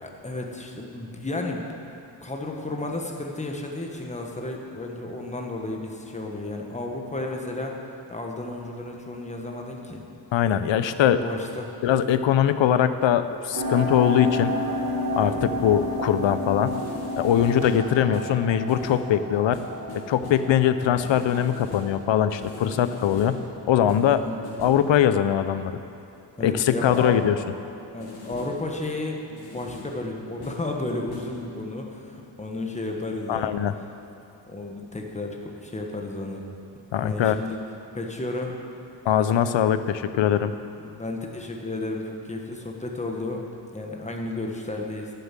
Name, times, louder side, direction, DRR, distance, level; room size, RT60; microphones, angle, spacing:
voice 1, 0.0-1.7 2.2-7.7 8.1-10.0 11.2-11.7 18.5-18.7 24.1-24.4 26.4-27.2 27.9-33.6 34.5-36.4 37.0-37.6 37.9-38.5 40.8-43.4 43.7-45.1, left 2 dB, 15° left, 1 dB, 1.2 m, -32 dB
voice 2, 10.3-11.2 11.8-14.6 15.2-16.8 17.2-19.6 19.9-23.4 23.7-24.2 24.6-25.8 26.4-27.4 33.3-33.7 36.9-37.4 39.1-40.5, left 9 dB, 80° left, 11 dB, 0.6 m, -22 dB
sound 1, 13.5-24.2, left 1 dB, 55° right, 3.3 m, -32 dB
sound 2, 16.7-17.7 18.1-19.1 19.5-20.5 21.0-22.0 22.4-23.5 23.9-24.9 26.9-27.2 28.0-28.7 29.4-30.1 30.4-30.7 31.1-31.4, left 3 dB, 55° left, 2.0 m, -41 dB
11.0 x 7.1 x 7.4 m, 2.7 s
wide cardioid pair, 125°, 44 cm